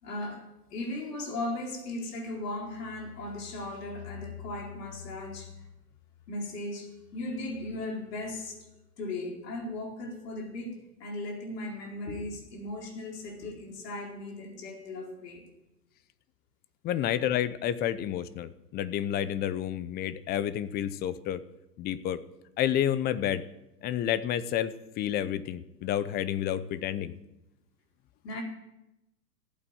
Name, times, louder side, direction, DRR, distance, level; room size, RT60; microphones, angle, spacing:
voice 1, 0.0-5.7 6.3-8.7 9.0-15.5 28.2-28.4, left 2 dB, 70° left, 1 dB, 4.4 m, -37 dB
voice 2, 16.8-21.4 21.8-22.2 22.6-23.4 23.8-27.1, left 11 dB, 20° left, 15 dB, 0.6 m, -30 dB
15.0 x 8.5 x 9.0 m, 0.92 s
hypercardioid pair, 110°, 50 cm